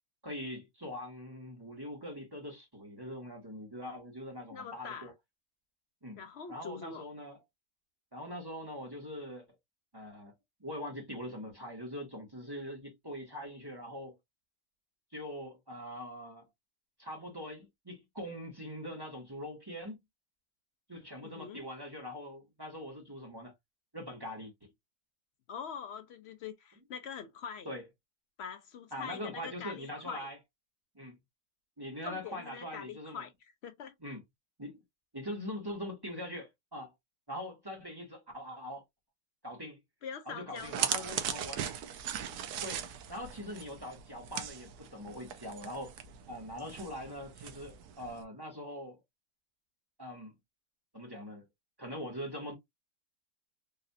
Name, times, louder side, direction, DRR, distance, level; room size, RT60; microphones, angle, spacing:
voice 1, 0.2-5.1 6.0-6.2 6.5-7.4 8.1-9.4 9.9-10.3 10.6-14.2 15.1-16.4 17.0-20.0 20.9-23.5 23.9-24.5 27.6-27.8 28.9-30.4 30.9-31.1 31.8-33.3 34.0-34.2 34.6-34.8 35.1-36.9 37.3-38.8 39.4-39.8 40.3-41.6 42.6-45.9 46.3-49.0 50.0-50.3 50.9-51.4 51.8-52.5, equal, 15° right, 1.1 m, -42 dB
voice 2, 4.5-5.1 6.2-7.1 21.2-21.7 25.5-27.7 28.4-30.3 32.0-33.9 40.0-41.2, left 6 dB, 70° left, 0.6 m, -44 dB
sound 1, 40.6-48.2, right 9 dB, 85° right, 1.2 m, -39 dB
4.0 x 2.5 x 2.6 m
omnidirectional pair, 1.7 m